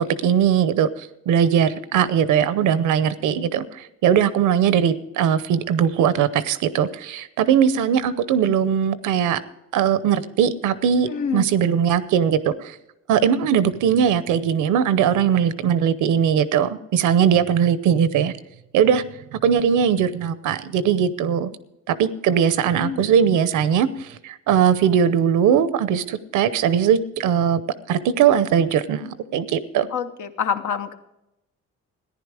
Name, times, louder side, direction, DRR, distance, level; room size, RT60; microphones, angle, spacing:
voice 1, 0.0-9.4 9.7-12.8 13.1-18.3 18.7-19.0 19.3-21.5 21.9-27.6 27.9-29.9, right 8 dB, 85° right, 15 dB, 0.8 m, -20 dB
voice 2, 11.1-11.5 22.8-23.0 29.9-31.0, left 7 dB, 70° left, 8 dB, 1.1 m, -26 dB
14.5 x 10.5 x 4.8 m, 0.89 s
cardioid pair, 90°, 30 cm